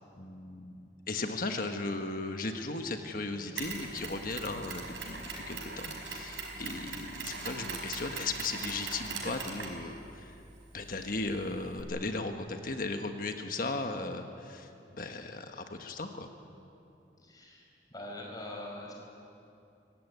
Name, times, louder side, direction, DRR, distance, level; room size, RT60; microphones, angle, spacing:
voice 1, 0.2-10.4 10.7-16.3, left 3 dB, 50° left, 5 dB, 1.4 m, -37 dB
Bowed string instrument, 2.4-6.2, left 1 dB, 25° right, 2.6 m, -54 dB
Mechanisms, 3.6-11.8, right 4 dB, 85° right, 5.0 m, -41 dB
voice 2, 17.2-18.9, left 1 dB, 20° left, -1 dB, 5.2 m, -43 dB
24.5 x 17.0 x 9.3 m, 2.7 s
head